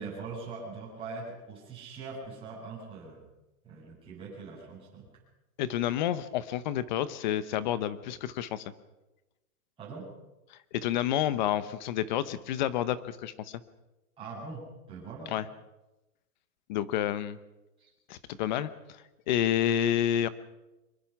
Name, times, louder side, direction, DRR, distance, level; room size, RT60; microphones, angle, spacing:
voice 1, 0.0-3.2 3.6-5.1 9.8-10.1 14.2-15.4 17.8-17.9, right 4 dB, 10° right, -7 dB, 7.6 m, -42 dB
voice 2, 5.6-8.6 10.5-13.6 15.3-15.5 16.7-17.4 18.1-20.3, left 11 dB, 30° left, 15 dB, 0.9 m, -29 dB
24.5 x 22.5 x 5.9 m, 1.0 s
supercardioid pair, 170°, 47 cm